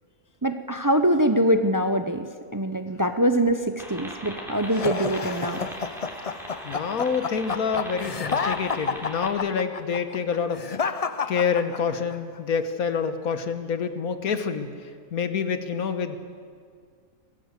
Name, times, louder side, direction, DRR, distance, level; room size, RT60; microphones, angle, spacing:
voice 1, 0.4-2.3 2.5-5.6, right 1 dB, 30° right, 8 dB, 0.3 m, -23 dB
sound 1, 3.8-9.3, equal, ahead, 3.1 m, -39 dB
sound 2, 4.7-12.2, left 5 dB, 50° left, 0.4 m, -30 dB
voice 2, 6.6-10.7 11.3-14.7 15.1-16.2, left 6 dB, 70° left, 9 dB, 1.7 m, -27 dB
21.5 x 16.0 x 8.2 m, 2.1 s
omnidirectional pair, 1.6 m